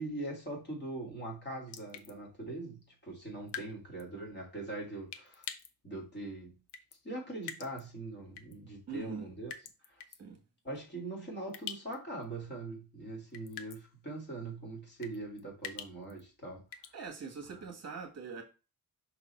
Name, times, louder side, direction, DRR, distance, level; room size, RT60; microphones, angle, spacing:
voice 1, 0.0-5.5 5.8-6.5 7.0-9.5 9.8-10.0 10.6-16.6 17.5-17.6, right 2 dB, 25° left, 2.8 m, -42 dB
sound 1, 1.7-2.1 3.5-3.7 4.0-4.1 5.1-5.7 6.7-7.0 7.4-7.8 8.4-8.5 9.5-10.2 11.5-12.0 12.2-12.3 13.3-13.8 15.0-16.2 16.7-16.9, left 8 dB, 80° left, 0.9 m, -44 dB
voice 2, 8.9-9.3 10.2-10.4 16.9-18.4, right 5 dB, 40° right, 1.7 m, -42 dB
5.9 x 4.0 x 4.4 m
wide cardioid pair, 175°, 40 cm